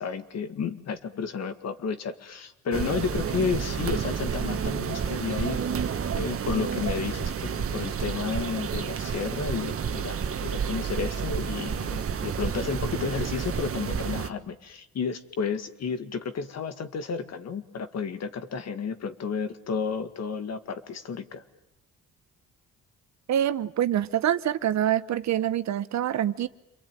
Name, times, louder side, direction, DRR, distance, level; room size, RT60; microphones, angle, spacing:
voice 1, 0.0-5.6 6.1-21.4, left 5 dB, 60° left, 9 dB, 2.1 m, -32 dB
sound 1, 2.7-14.3, right 7 dB, 50° right, 1.5 m, -30 dB
voice 2, 23.3-26.5, right 11 dB, 65° right, 13 dB, 1.1 m, -25 dB
28.0 x 22.5 x 9.1 m, 0.85 s
cardioid pair, 90°, 30 cm